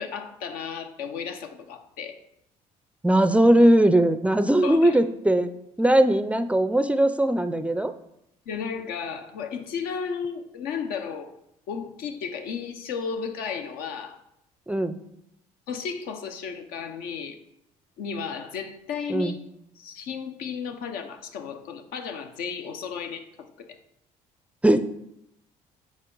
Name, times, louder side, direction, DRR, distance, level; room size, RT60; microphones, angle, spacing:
voice 1, 0.0-2.2 4.6-5.0 8.5-11.3 11.7-14.2 15.7-17.4 18.0-19.4 19.8-23.3 23.6-23.7, left 6 dB, 75° left, 6 dB, 0.8 m, -34 dB
voice 2, 3.0-5.5 5.8-7.9 14.7-15.0 19.1-19.3 24.6-24.9, right 1 dB, 10° right, 11 dB, 0.4 m, -20 dB
7.2 x 4.4 x 3.8 m, 0.80 s
supercardioid pair, 75°, 15 cm